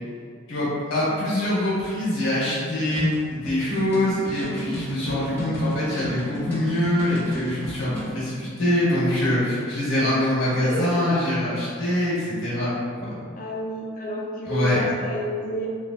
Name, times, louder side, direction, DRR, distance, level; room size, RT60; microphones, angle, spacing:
voice 1, 0.5-12.7 13.0-13.2 14.4-14.8, left 1 dB, 80° left, -8 dB, 1.1 m, -24 dB
sound 1, 3.0-8.1, equal, 10° left, 1.1 m, -33 dB
voice 2, 10.6-11.4 13.4-15.7, equal, 40° left, -3 dB, 0.4 m, -30 dB
3.0 x 2.3 x 2.5 m, 2.2 s
head